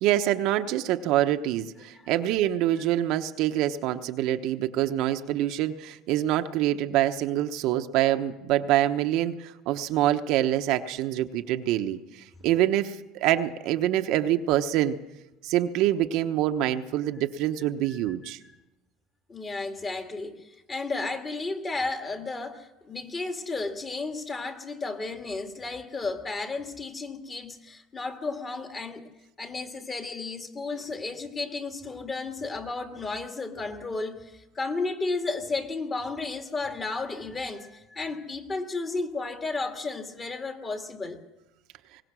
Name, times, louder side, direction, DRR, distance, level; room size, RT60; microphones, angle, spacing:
voice 1, 0.0-15.0 15.4-18.4, right 13 dB, 65° right, 1.0 m, -25 dB
voice 2, 19.3-29.0 29.4-41.2, left 3 dB, 25° left, 2.3 m, -33 dB
22.5 x 19.0 x 6.2 m
supercardioid pair, 110°, 0 cm